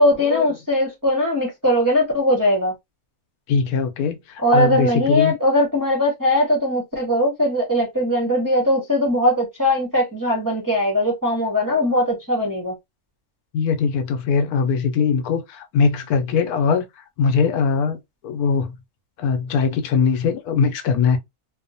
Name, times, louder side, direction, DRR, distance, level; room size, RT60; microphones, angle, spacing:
voice 1, 0.0-2.7 4.4-12.7, left 1 dB, 20° right, 0.5 m, -20 dB
voice 2, 3.5-5.3 11.7-11.9 13.5-16.8 17.2-18.7 19.2-21.2, left 5 dB, 90° left, 1.1 m, -21 dB
2.8 x 2.1 x 2.6 m
omnidirectional pair, 1.6 m